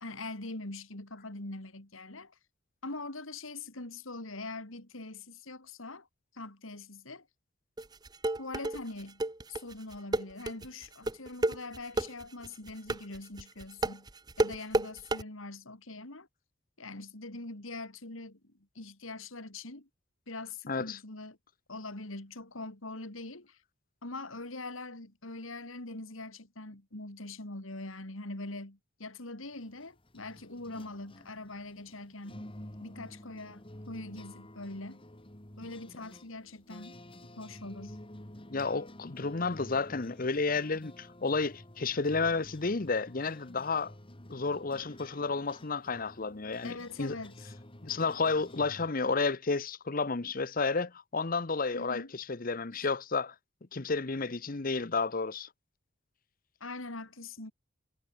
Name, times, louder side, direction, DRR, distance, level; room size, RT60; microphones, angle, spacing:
voice 1, 0.0-2.4 2.8-6.1 6.3-7.3 8.4-9.2 9.5-14.1 14.4-16.3 16.8-19.9 20.3-21.4 21.7-23.6 24.0-32.4 32.8-35.0 35.6-36.9 37.4-38.0 46.6-47.5 51.7-52.1 52.7-52.9 56.6-57.5, left 2 dB, 80° left, 3.3 m, -43 dB
sound 1, 7.8-15.2, right 2 dB, 20° right, 0.9 m, -31 dB
voice 2, 20.7-21.0 38.5-43.9 44.3-47.2 47.8-53.3 53.7-55.5, left 4 dB, 45° left, 0.9 m, -31 dB
sound 2, 29.4-48.9, left 1 dB, 25° left, 2.3 m, -50 dB
head